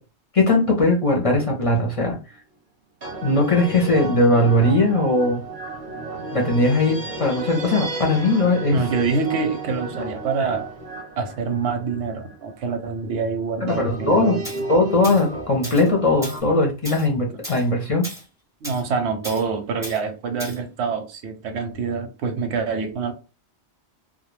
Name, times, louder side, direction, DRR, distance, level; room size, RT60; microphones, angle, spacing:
voice 1, 0.3-2.2 3.2-5.4 6.3-8.8 13.6-14.3 14.7-18.1, left 2 dB, 40° left, 0.5 m, -19 dB
sound 1, 1.2-1.7 3.0-12.6 13.7-16.4, right 2 dB, 45° right, 0.6 m, -33 dB
voice 2, 8.7-10.7 11.2-14.5 18.6-23.1, right 5 dB, 85° right, 0.9 m, -26 dB
Tools, 14.4-14.6 15.0-15.3 15.6-15.9 16.2-16.4 16.9-17.1 17.4-17.6 18.0-18.2 18.6-18.8 19.2-19.4 19.8-20.0 20.4-20.6, equal, 5° right, 0.6 m, -35 dB
2.2 x 2.1 x 3.1 m
omnidirectional pair, 1.1 m